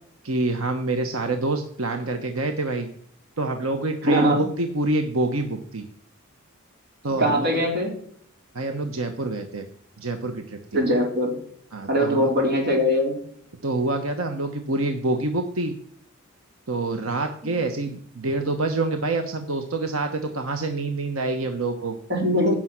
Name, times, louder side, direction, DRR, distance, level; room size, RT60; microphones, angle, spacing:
voice 1, 0.2-2.9 3.4-5.9 7.0-7.6 8.5-9.6 10.0-10.8 11.7-12.3 13.6-15.7 16.7-22.0, right 2 dB, 85° right, 5 dB, 1.2 m, -26 dB
voice 2, 4.1-4.4 7.2-8.0 10.7-11.4 11.9-13.2 17.4-17.5 22.1-22.5, equal, 55° right, 0 dB, 4.2 m, -21 dB
16.0 x 6.2 x 6.0 m, 0.65 s
head